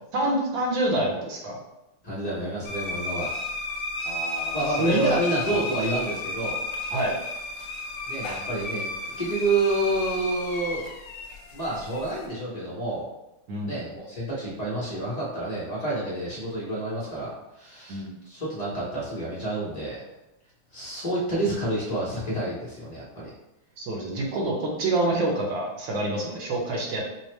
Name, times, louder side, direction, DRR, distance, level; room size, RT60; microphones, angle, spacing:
voice 1, 0.1-1.6 4.0-5.2 5.5-5.6 6.9-7.1 13.5-13.7 17.9-18.1 23.8-27.0, right 1 dB, 65° right, -1 dB, 1.4 m, -27 dB
voice 2, 2.0-3.3 4.5-6.6 8.1-10.9 11.5-13.1 13.6-20.0 20.7-23.3, right 2 dB, 50° left, -7 dB, 0.4 m, -29 dB
sound 1, 2.7-12.3, left 2 dB, 75° left, 1.4 m, -33 dB
5.3 x 2.1 x 3.2 m, 0.92 s
omnidirectional pair, 2.4 m